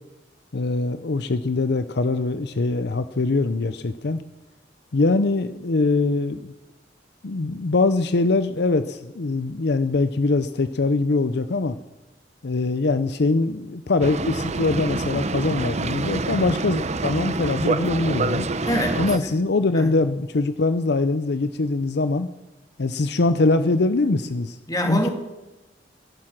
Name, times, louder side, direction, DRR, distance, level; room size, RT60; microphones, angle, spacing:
voice 1, 0.5-4.2 4.9-6.5 7.2-11.8 12.4-18.5 19.0-22.3 22.8-24.6 24.9-25.1, left 3 dB, 65° left, 12 dB, 0.6 m, -23 dB
Boat Water vehicle, 14.0-19.2, right 3 dB, 40° right, 0.8 m, -26 dB
voice 2, 18.6-19.3 19.7-19.9 24.7-25.1, left 1 dB, 20° left, 3 dB, 3.0 m, -25 dB
21.0 x 11.5 x 6.0 m, 1.0 s
head